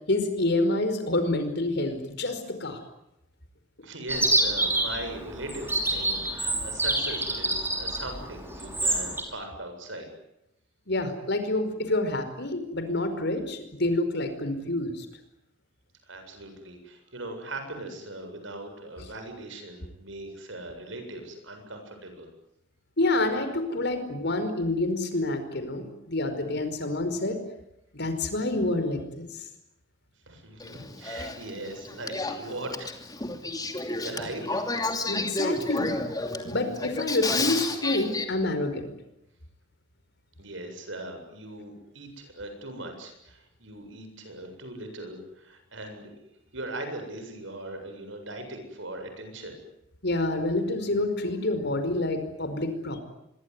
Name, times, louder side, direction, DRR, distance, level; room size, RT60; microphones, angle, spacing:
voice 1, 0.1-2.8 10.9-15.1 23.0-27.4 27.9-29.4 35.1-35.9 36.4-38.9 50.0-53.0, left 2 dB, 60° left, 9 dB, 5.0 m, -28 dB
voice 2, 3.8-10.1 16.0-22.3 30.3-33.0 34.0-34.7 40.4-46.1 46.5-49.6, right 1 dB, 75° right, 6 dB, 7.7 m, -39 dB
Chirp tweet, 4.1-9.2, right 2 dB, 10° right, 5.9 m, -27 dB
Male speech man speaking / Female speech woman speaking / Conversation, 30.6-38.2, left 2 dB, 20° left, 2.8 m, -31 dB
25.5 x 23.0 x 9.7 m, 0.82 s
head